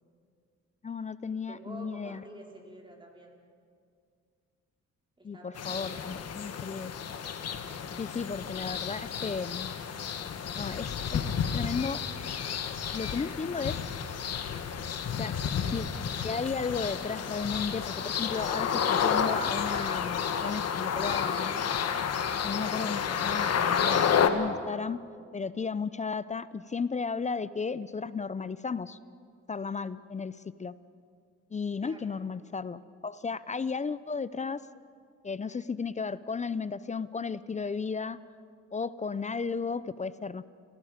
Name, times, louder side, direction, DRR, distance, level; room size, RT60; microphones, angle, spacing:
voice 1, 0.8-2.2 5.2-6.9 8.0-9.7 10.5-11.2 11.5-12.0 12.9-13.8 15.2-15.9 16.2-21.6 22.4-23.5 23.8-25.0 25.3-29.0 29.5-30.7 31.5-34.6 35.2-38.2 38.7-40.4, left 5 dB, 25° left, 16 dB, 0.5 m, -34 dB
voice 2, 1.5-3.4 5.2-5.9 31.8-32.2, right 1 dB, 15° right, -1 dB, 4.5 m, -48 dB
sound 1, 5.6-24.3, left 7 dB, 55° left, 1.4 m, -31 dB
30.0 x 17.0 x 5.2 m, 2.2 s
cardioid pair, 90°, 30 cm